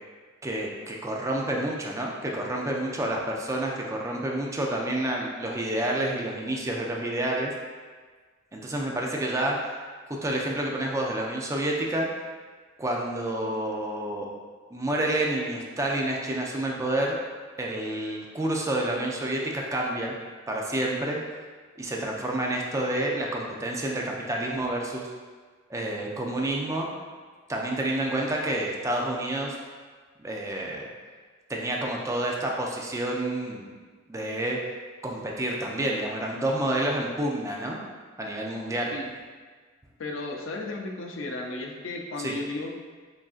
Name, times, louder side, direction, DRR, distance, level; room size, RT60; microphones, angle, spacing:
voice 1, 0.4-7.5 8.5-9.8 10.1-12.1 12.8-14.3 14.7-17.2 17.6-20.2 20.5-21.2 21.8-25.1 25.7-26.9 27.5-29.5 30.2-30.9 31.5-33.7 34.1-34.6 35.0-37.8 38.2-38.9 42.2-42.4, right 1 dB, 15° right, -1 dB, 0.4 m, -29 dB
voice 2, 40.0-42.8, left 2 dB, 75° left, 1 dB, 0.6 m, -34 dB
6.0 x 2.6 x 2.4 m, 1.5 s
head